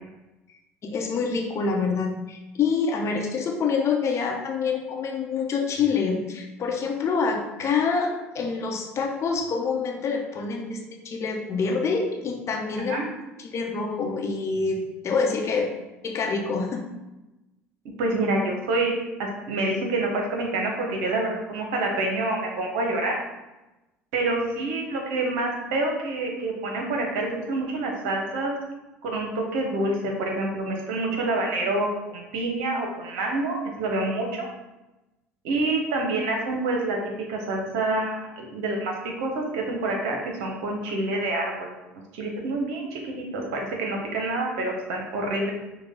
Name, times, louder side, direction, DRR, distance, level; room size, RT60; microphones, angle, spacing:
voice 1, 0.8-13.0 13.4-15.7 16.0-16.9, left 5 dB, 40° left, 1 dB, 0.9 m, -26 dB
voice 2, 18.0-18.9 19.2-23.2 24.1-28.5 29.0-34.5 35.4-37.0 37.3-41.7 42.1-45.5, right 2 dB, 70° right, 1 dB, 1.0 m, -27 dB
6.1 x 2.3 x 3.7 m, 1.0 s
hypercardioid pair, 65°, 7 cm